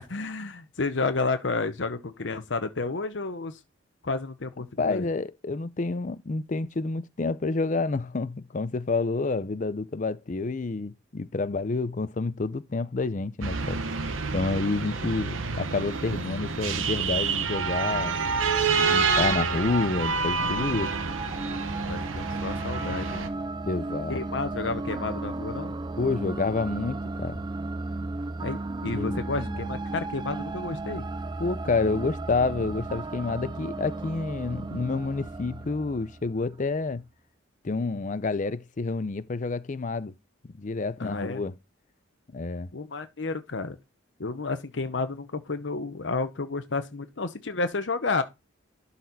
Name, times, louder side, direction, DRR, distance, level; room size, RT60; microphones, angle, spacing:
voice 1, 0.1-3.6 4.0-5.1 21.9-23.3 24.1-25.7 28.4-31.0 41.0-41.4 42.7-43.8 44.2-48.2, left 3 dB, 65° left, 0.8 m, -31 dB
voice 2, 4.8-13.8 14.3-18.2 18.7-20.9 23.7-24.2 26.0-27.4 28.8-29.7 31.4-37.0 37.6-40.1 40.6-41.5 42.3-42.7, left 3 dB, 40° left, 0.5 m, -29 dB
sound 1, 13.4-23.3, right 5 dB, 85° right, 1.1 m, -28 dB
sound 2, 20.4-36.6, right 2 dB, 20° right, 0.4 m, -35 dB
12.0 x 4.2 x 4.1 m
head